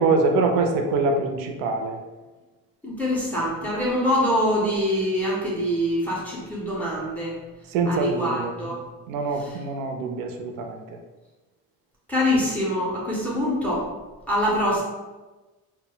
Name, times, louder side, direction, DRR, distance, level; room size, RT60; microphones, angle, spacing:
voice 1, 0.0-2.0 7.7-8.5 9.1-10.8, right 3 dB, 70° right, 3 dB, 0.5 m, -24 dB
voice 2, 2.8-7.4 7.8-8.8 9.3-9.6 12.1-13.9 14.3-14.8, equal, 5° left, -6 dB, 0.4 m, -24 dB
2.2 x 2.0 x 3.7 m, 1.2 s
cardioid pair, 175°, 34 cm